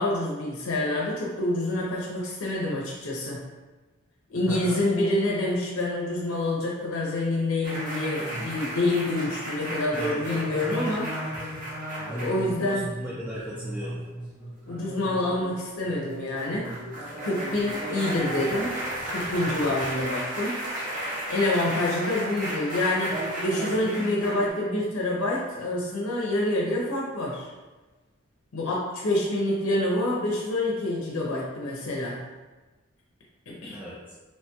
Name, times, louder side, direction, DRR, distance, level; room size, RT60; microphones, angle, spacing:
voice 1, 0.0-3.4 4.3-11.1 12.1-12.9 14.7-16.7 17.2-18.8 19.1-20.6 21.3-27.5 28.5-32.2 33.5-33.8, left 1 dB, 75° left, -3 dB, 0.5 m, -27 dB
voice 2, 4.5-4.8 9.9-10.5 12.0-14.0 33.7-34.0, equal, 5° right, -8 dB, 0.3 m, -36 dB
sound 1, 7.6-24.5, right 1 dB, 40° right, 0.7 m, -34 dB
3.0 x 2.2 x 2.8 m, 1.2 s
head